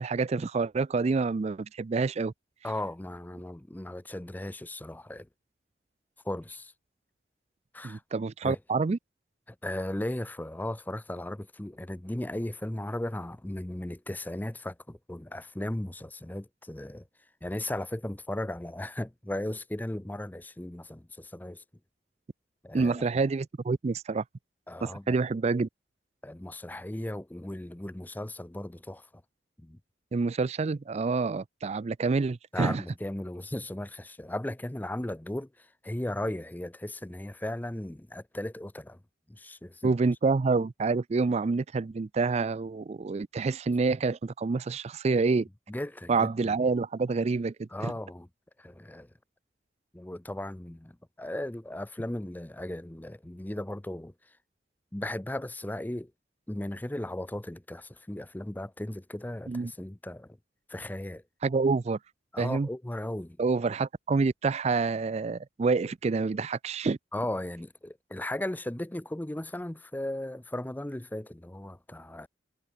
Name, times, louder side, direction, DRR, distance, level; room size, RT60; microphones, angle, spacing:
voice 1, 0.0-2.3 7.8-9.0 22.7-24.2 24.8-25.7 30.1-32.8 39.8-45.5 46.1-47.9 59.5-59.7 61.4-62.0 62.4-62.7 63.4-67.0, right 4 dB, 35° right, 0.4 m, -27 dB
voice 2, 2.6-5.3 6.2-6.7 7.7-8.0 8.4-8.6 9.5-17.0 17.4-21.6 22.6-23.0 24.7-25.2 26.2-29.1 29.6-29.8 32.5-39.0 39.3-40.0 45.7-46.5 47.7-48.3 48.6-49.1 49.9-54.1 54.9-56.1 56.5-60.4 60.7-61.2 62.3-63.4 67.1-72.3, left 1 dB, 10° left, 0.6 m, -36 dB
head